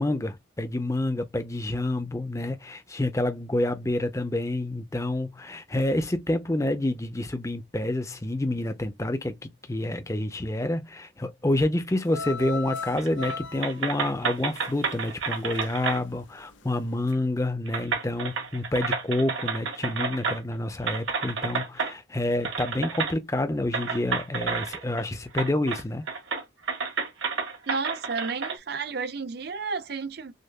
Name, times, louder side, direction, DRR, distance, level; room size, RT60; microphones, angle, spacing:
voice 1, 0.0-26.1, left 1 dB, 15° left, 0.5 m, -28 dB
sound 1, 12.0-15.9 16.2-16.7 17.1-17.2, left 4 dB, 70° left, 0.6 m, -37 dB
sound 2, 13.0-13.4 13.6-16.0 17.1-17.2 17.7-20.5 20.9-21.9 22.4-23.1 23.7-25.0 25.3-25.8 26.1-28.6, right 5 dB, 80° right, 1.6 m, -30 dB
voice 2, 27.7-30.3, right 4 dB, 55° right, 0.6 m, -32 dB
6.4 x 2.4 x 2.2 m
head